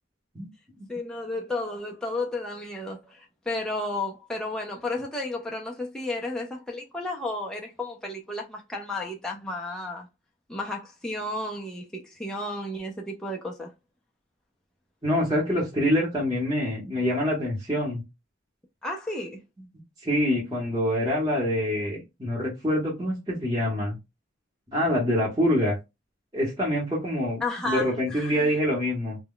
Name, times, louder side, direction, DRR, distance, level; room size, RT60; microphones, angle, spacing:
voice 1, 0.9-10.1 10.5-13.7 18.8-19.4 27.4-28.6, left 2 dB, 5° left, 0.4 m, -33 dB
voice 2, 15.0-18.0 20.0-24.0 24.7-25.8 26.3-27.4 27.7-29.2, equal, 20° right, 0.9 m, -25 dB
2.2 x 2.1 x 3.6 m
head